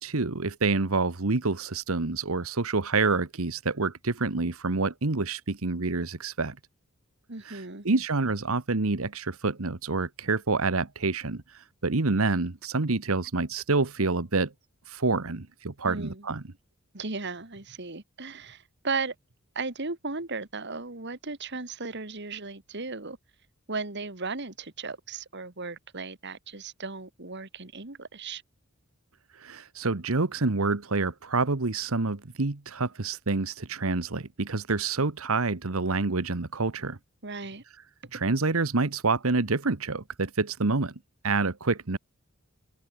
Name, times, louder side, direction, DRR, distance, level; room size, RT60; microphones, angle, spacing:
voice 1, 0.0-6.6 7.4-14.5 14.9-16.4 29.4-37.0 38.1-40.9 41.2-42.0, right 3 dB, 75° right, 1.3 m, -27 dB
voice 2, 7.3-7.9 15.8-16.2 16.9-19.1 19.6-23.2 23.7-28.4 37.2-37.6 38.0-38.2, right 4 dB, 55° right, 2.4 m, -36 dB
open air
head